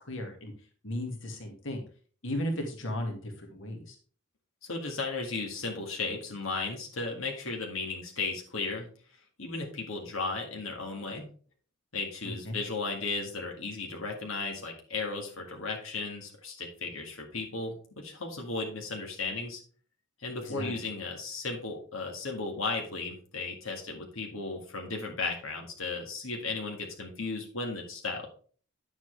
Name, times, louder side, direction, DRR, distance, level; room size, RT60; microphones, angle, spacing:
voice 1, 0.1-0.5 0.8-1.8 2.2-4.0 12.2-12.6 20.4-20.7, left 1 dB, 65° left, 2 dB, 2.0 m, -35 dB
voice 2, 4.6-8.9 9.4-11.3 11.9-19.6 20.2-28.3, left 3 dB, 90° left, 1 dB, 1.9 m, -35 dB
9.7 x 7.3 x 3.3 m, 0.42 s
head